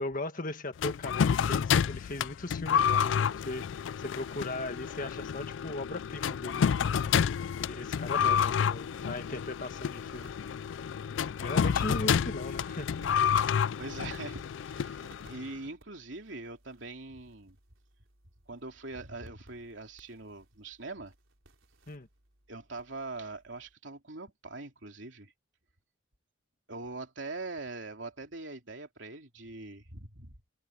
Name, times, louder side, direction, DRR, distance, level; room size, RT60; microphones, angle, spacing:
voice 1, 0.0-6.7 7.6-10.3 11.4-12.9 21.9-22.1, left 2 dB, 45° left, 1.7 m, -38 dB
sound 1, 0.8-15.5, left 7 dB, 70° left, 0.3 m, -29 dB
sound 2, 8.9-23.7, right 1 dB, 85° right, 4.0 m, -60 dB
voice 2, 13.8-14.4 14.7-17.6 18.5-21.1 22.5-25.3 26.7-30.4, right 3 dB, 65° right, 3.2 m, -42 dB
head